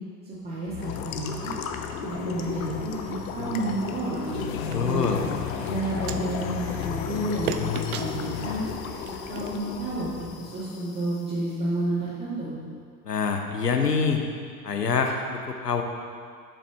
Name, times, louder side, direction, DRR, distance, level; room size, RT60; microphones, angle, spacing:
voice 1, 0.2-1.5 2.0-4.4 4.8-5.2 5.5-8.6 9.0-10.1 10.4-12.6, right 1 dB, 20° right, -11 dB, 1.9 m, -31 dB
sound 1, 0.7-10.3, left 6 dB, 35° left, 1.3 m, -45 dB
sound 2, 0.8-11.2, left 7 dB, 60° left, 0.7 m, -33 dB
sound 3, 4.3-10.3, right 10 dB, 70° right, 0.5 m, -40 dB
voice 2, 4.7-5.2 13.0-14.2 14.6-15.8, left 5 dB, 90° left, 4 dB, 0.8 m, -25 dB
7.4 x 7.3 x 3.4 m, 2.1 s
figure-of-eight pair, 75°, 47 cm